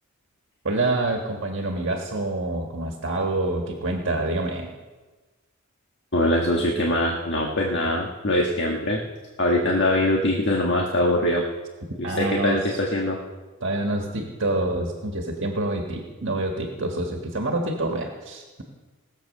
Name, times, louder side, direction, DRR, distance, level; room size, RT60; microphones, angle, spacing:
voice 1, 0.6-4.7 12.0-12.8 13.6-18.6, right 2 dB, 60° right, 2 dB, 1.6 m, -27 dB
voice 2, 6.1-9.0 9.4-11.4 12.0-13.2, left 1 dB, 55° left, 0 dB, 1.5 m, -22 dB
19.0 x 7.7 x 6.6 m, 1.3 s
head